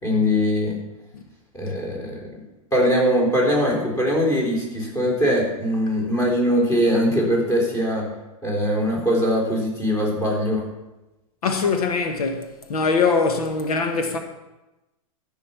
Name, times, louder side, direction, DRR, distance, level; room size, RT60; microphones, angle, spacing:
voice 1, 0.0-0.8 1.5-2.3 2.7-8.1 8.4-10.6, equal, 20° left, 4.1 m, -21 dB
voice 2, 11.4-14.2, left 4 dB, 85° left, 1.4 m, -23 dB
13.5 x 5.5 x 5.8 m
hypercardioid pair, 130°, 19 cm